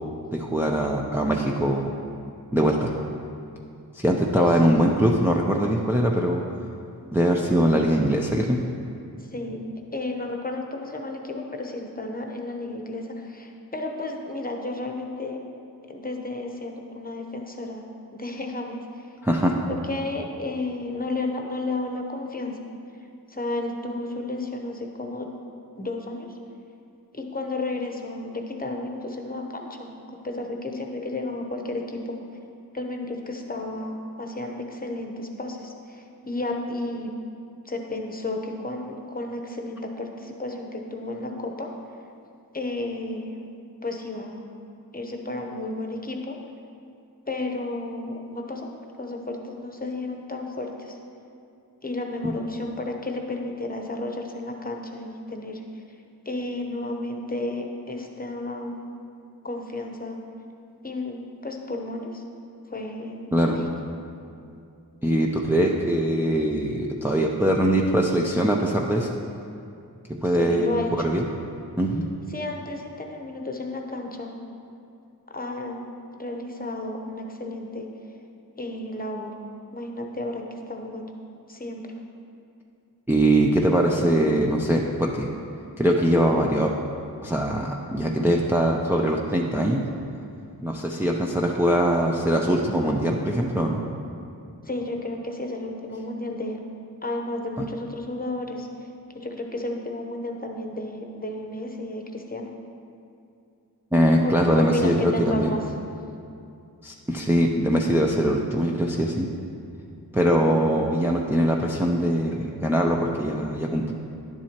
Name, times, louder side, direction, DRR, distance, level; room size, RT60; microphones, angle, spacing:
voice 1, 0.3-1.9 2.5-2.9 3.9-6.4 7.1-8.6 19.2-19.5 63.3-63.6 65.0-69.1 70.1-71.3 71.8-72.1 83.1-85.3 85.8-86.7 87.2-89.8 90.6-93.8 103.9-105.5 106.8-109.3 110.1-113.9, right 1 dB, 5° right, -1 dB, 0.5 m, -22 dB
voice 2, 9.9-15.4 15.9-17.9 18.1-19.1 19.9-22.6 23.3-25.3 25.8-26.3 27.1-32.2 32.7-37.1 37.6-41.7 42.5-43.4 43.8-44.5 44.9-46.4 47.3-48.7 49.0-51.0 51.8-55.6 56.2-58.8 59.4-60.2 60.8-62.2 62.7-63.6 70.4-71.1 72.3-74.3 75.3-77.9 78.6-79.3 79.7-81.1 81.5-81.9 94.6-96.6 97.0-98.7 99.1-102.5 104.2-105.6, left 2 dB, 25° left, 2 dB, 0.9 m, -32 dB
10.5 x 7.4 x 2.9 m, 2.6 s
cardioid pair, 70°, 38 cm